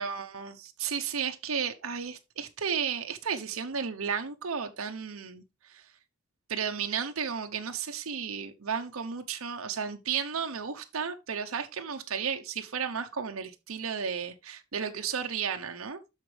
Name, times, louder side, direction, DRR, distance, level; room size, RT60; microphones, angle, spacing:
voice 1, 0.0-5.8 6.5-16.0, right 6 dB, 75° right, 0.8 m, -33 dB
12.0 x 4.5 x 3.2 m
head